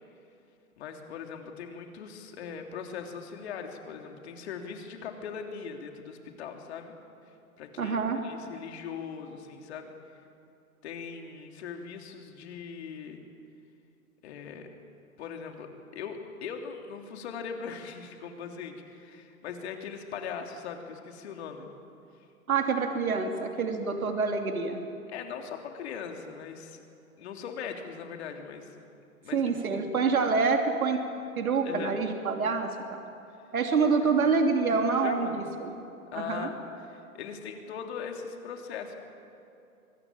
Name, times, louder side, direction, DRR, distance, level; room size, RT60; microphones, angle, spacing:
voice 1, 0.8-6.9 7.6-8.0 8.2-9.9 10.8-13.2 14.2-14.7 15.2-21.7 25.1-26.8 27.2-28.7 29.2-29.4 29.7-29.8 31.6-32.0 34.0-34.1 35.0-35.4 36.1-36.6 36.8-39.0, left 6 dB, 50° left, 4 dB, 3.3 m, -40 dB
voice 2, 7.8-8.2 22.5-24.8 29.3-31.0 31.4-33.0 33.5-35.8 36.2-36.5, right 4 dB, 75° right, 4 dB, 3.1 m, -27 dB
24.0 x 21.0 x 8.9 m, 2.7 s
hypercardioid pair, 135°, 43 cm